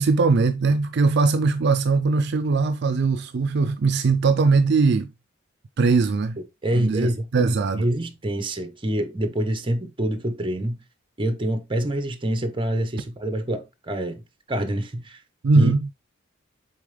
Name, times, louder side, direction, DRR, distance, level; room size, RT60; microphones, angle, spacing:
voice 1, 0.0-5.1 5.8-6.4 6.7-7.9 15.4-15.9, right 4 dB, 60° right, 0.4 m, -20 dB
voice 2, 6.6-10.8 11.2-14.2 14.5-15.2 15.5-15.9, right 1 dB, 25° right, 0.9 m, -26 dB
7.1 x 4.1 x 3.2 m
head